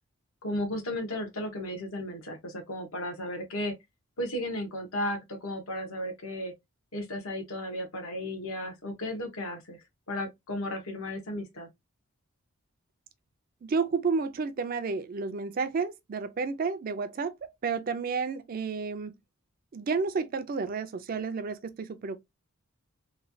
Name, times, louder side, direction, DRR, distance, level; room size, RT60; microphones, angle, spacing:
voice 1, 0.4-3.7 4.2-6.5 6.9-9.8 10.1-11.7, left 1 dB, 75° left, 0.9 m, -34 dB
voice 2, 13.6-17.3 17.6-19.1 19.7-22.2, right 4 dB, 40° right, 0.3 m, -31 dB
3.1 x 2.3 x 2.5 m
head